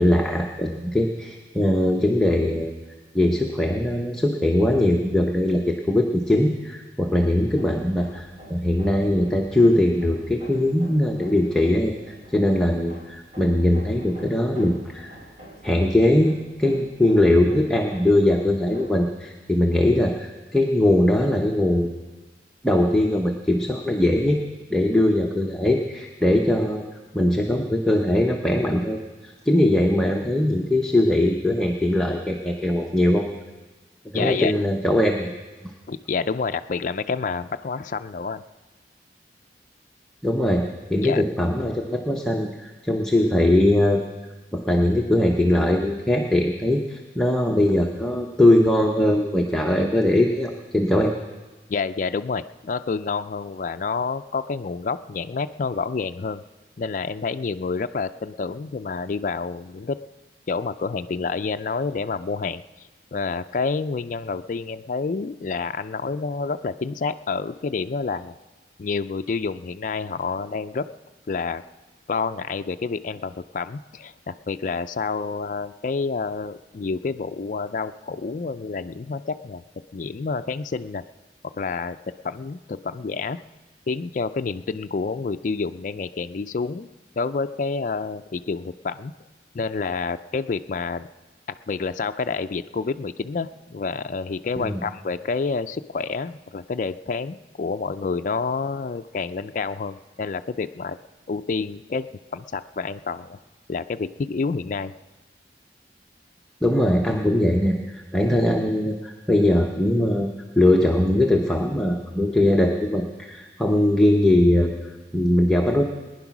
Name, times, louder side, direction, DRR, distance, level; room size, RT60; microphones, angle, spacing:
voice 1, 0.0-2.7 3.1-11.9 12.3-15.1 15.6-22.0 22.6-24.4 24.7-26.8 27.1-33.3 34.1-35.3 35.6-35.7 40.2-44.0 44.5-51.2 94.6-94.8 106.6-110.3 110.6-114.7 115.1-115.8, left 1 dB, 5° left, 0 dB, 0.8 m, -21 dB
Hammer, 7.1-19.1, equal, 45° right, 3.3 m, -46 dB
voice 2, 34.1-34.5 35.9-38.4 41.0-41.2 51.7-56.4 56.8-60.0 60.5-62.6 63.1-68.3 68.8-70.9 71.3-71.6 72.1-79.6 79.9-81.0 81.5-83.4 83.9-86.9 87.2-89.1 89.5-91.1 91.7-101.0 101.3-103.4 103.7-104.9, left 4 dB, 45° left, 9 dB, 0.4 m, -28 dB
19.5 x 10.0 x 6.0 m, 1.2 s
head